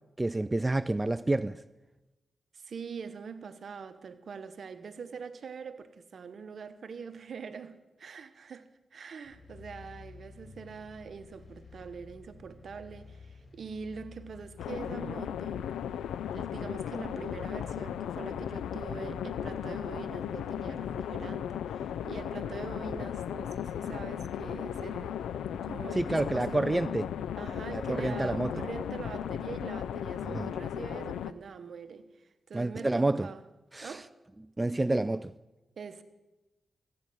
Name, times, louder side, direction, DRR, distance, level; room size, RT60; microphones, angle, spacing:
voice 1, 0.2-1.6 26.0-27.1 27.7-28.7 30.3-30.5 32.5-33.3 33.7-34.0 34.6-35.3, right 2 dB, 25° right, 0.4 m, -29 dB
voice 2, 2.5-15.7 16.3-25.2 25.6-26.9 27.4-33.4 33.8-34.1 35.8-36.0, right 5 dB, 70° right, 1.0 m, -43 dB
sound 1, 9.2-29.2, left 4 dB, 55° left, 5.1 m, -52 dB
sound 2, 14.6-31.3, left 9 dB, 90° left, 0.4 m, -36 dB
15.0 x 8.6 x 7.8 m
supercardioid pair, 40°, 0 cm